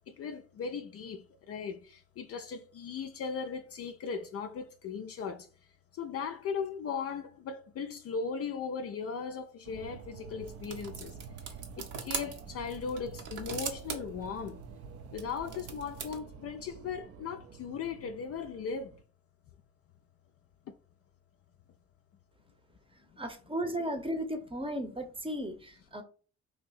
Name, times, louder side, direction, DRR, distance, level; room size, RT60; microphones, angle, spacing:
voice 1, 0.2-1.2 1.5-5.5 6.0-11.1 11.8-14.6 15.1-18.9, left 5 dB, 40° left, 0.4 m, -38 dB
sound 1, 9.6-19.0, right 6 dB, 45° right, 0.5 m, -49 dB
sound 2, 10.4-16.2, right 6 dB, 60° right, 0.9 m, -42 dB
voice 2, 22.9-26.0, equal, 15° right, 0.8 m, -35 dB
2.8 x 2.6 x 3.9 m
hypercardioid pair, 45°, 36 cm